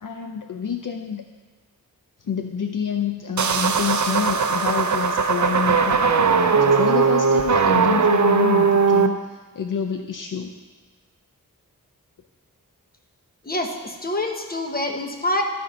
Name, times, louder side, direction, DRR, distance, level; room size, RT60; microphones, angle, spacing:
voice 1, 0.0-1.2 2.2-10.5, left 7 dB, 60° left, 5 dB, 0.6 m, -28 dB
sound 1, 3.4-9.1, right 5 dB, 55° right, 0.6 m, -19 dB
voice 2, 13.4-15.4, left 1 dB, 25° left, 3 dB, 1.2 m, -26 dB
13.0 x 4.4 x 5.0 m, 1.3 s
cardioid pair, 40°, 36 cm